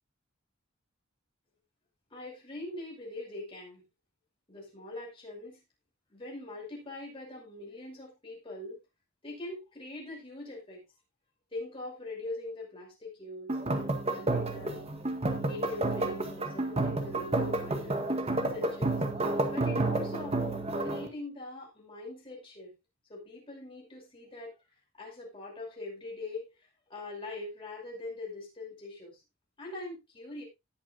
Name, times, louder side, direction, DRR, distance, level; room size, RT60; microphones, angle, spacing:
voice 1, 2.1-3.8 4.5-5.6 6.1-8.8 9.2-10.8 11.5-14.9 15.4-18.1 18.5-19.0 19.5-22.7 23.1-24.5 25.0-26.5 26.9-29.2 29.6-30.4, left 2 dB, 25° left, -2 dB, 5.8 m, -42 dB
sound 1, 13.5-21.1, right 2 dB, 30° right, 1.7 m, -30 dB
19.0 x 6.8 x 2.5 m, 0.22 s
head